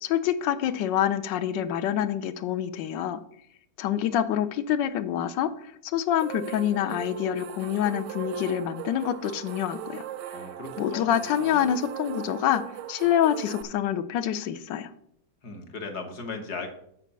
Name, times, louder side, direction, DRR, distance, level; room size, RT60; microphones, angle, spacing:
voice 1, 0.0-3.2 3.8-5.5 5.9-10.0 10.8-12.6 12.9-14.9, left 10 dB, 85° left, 12 dB, 1.3 m, -26 dB
sound 1, 6.2-13.6, right 11 dB, 80° right, 1.2 m, -39 dB
voice 2, 10.3-11.7 15.4-16.7, left 3 dB, 60° left, 4 dB, 1.8 m, -38 dB
8.3 x 4.7 x 6.7 m, 0.70 s
omnidirectional pair, 1.9 m